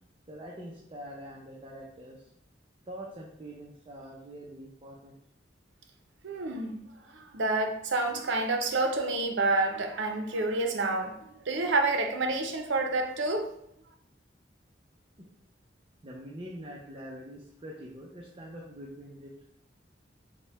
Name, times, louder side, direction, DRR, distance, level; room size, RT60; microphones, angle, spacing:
voice 1, 0.3-2.3 2.9-5.2 16.0-19.4, equal, 30° right, 0.6 m, -44 dB
voice 2, 6.2-6.8 7.1-13.5, right 2 dB, 75° right, 0.6 m, -28 dB
5.1 x 2.2 x 4.1 m
head